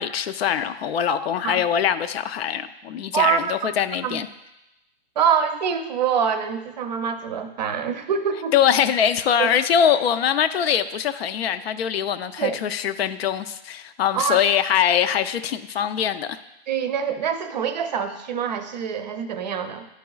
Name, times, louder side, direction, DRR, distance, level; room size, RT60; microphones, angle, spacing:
voice 1, 0.0-4.3 8.5-16.4, left 9 dB, 70° left, 12 dB, 0.5 m, -23 dB
voice 2, 3.1-3.7 4.0-4.2 5.2-8.5 9.4-9.5 12.4-12.6 14.1-14.4 16.7-19.9, right 7 dB, 40° right, 8 dB, 0.5 m, -25 dB
11.5 x 4.8 x 2.3 m, 0.93 s
hypercardioid pair, 160°, 32 cm